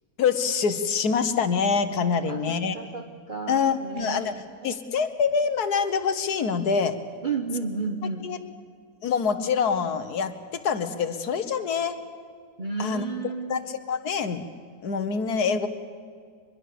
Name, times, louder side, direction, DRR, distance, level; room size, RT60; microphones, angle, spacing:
voice 1, 0.2-2.8 3.5-4.4 4.6-7.0 8.2-8.4 9.0-12.0 12.8-13.0 13.5-14.5 14.8-15.7, left 6 dB, 85° left, 10 dB, 1.8 m, -25 dB
voice 2, 2.2-4.4 4.6-4.8 7.2-8.3 12.6-13.6, right 4 dB, 35° right, 5 dB, 1.1 m, -32 dB
24.0 x 22.0 x 6.9 m, 2.1 s
omnidirectional pair, 1.6 m